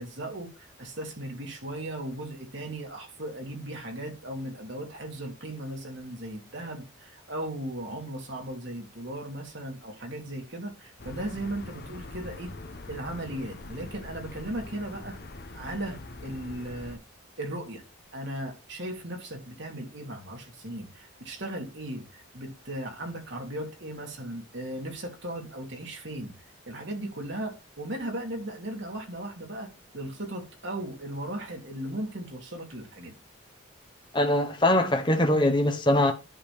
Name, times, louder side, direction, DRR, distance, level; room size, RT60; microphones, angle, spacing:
voice 1, 0.0-12.5 12.9-15.2 15.5-17.0 17.4-17.8 18.1-26.3 26.7-33.2, right 1 dB, 55° right, 2.9 m, -37 dB
sound 1, 11.0-17.0, left 2 dB, 50° left, 1.0 m, -43 dB
voice 2, 34.1-36.1, left 1 dB, 20° left, 1.2 m, -22 dB
11.0 x 4.0 x 5.0 m
head